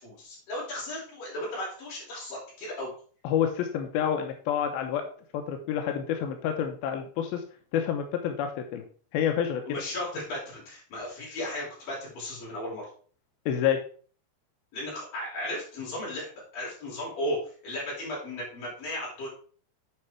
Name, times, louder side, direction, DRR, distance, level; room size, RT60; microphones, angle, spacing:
voice 1, 0.0-2.9 9.7-12.9 14.7-19.4, left 1 dB, 55° left, -4 dB, 5.4 m, -35 dB
voice 2, 3.2-5.1 5.3-7.4 7.7-8.9 9.1-9.8 13.5-13.8, left 9 dB, 75° left, 5 dB, 2.3 m, -28 dB
8.8 x 4.8 x 4.4 m, 0.43 s
omnidirectional pair, 5.0 m